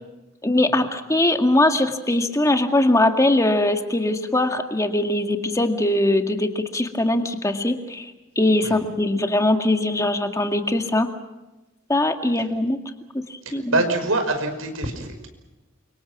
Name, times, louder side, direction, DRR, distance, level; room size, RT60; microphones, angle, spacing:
voice 1, 0.4-11.1 11.9-12.8 13.5-13.8, left 1 dB, 15° left, 5 dB, 2.0 m, -21 dB
voice 2, 13.5-15.3, right 2 dB, 85° right, 5 dB, 5.4 m, -25 dB
29.0 x 25.5 x 6.1 m, 1.0 s
head